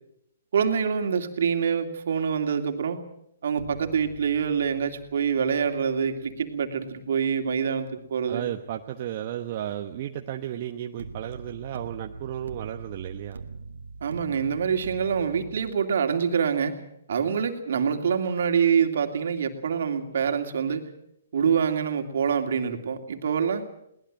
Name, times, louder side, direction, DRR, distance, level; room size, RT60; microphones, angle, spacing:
voice 1, 0.5-3.0 3.4-8.4 14.0-16.8 17.1-20.9 21.3-23.6, right 7 dB, 65° right, 5 dB, 2.7 m, -25 dB
sound 1, 3.5-8.6 11.0-15.7, right 4 dB, 80° right, 1.8 m, -43 dB
voice 2, 8.3-13.4, right 11 dB, 45° right, 4 dB, 1.1 m, -34 dB
22.0 x 19.0 x 7.6 m, 0.77 s
hypercardioid pair, 135°, 0 cm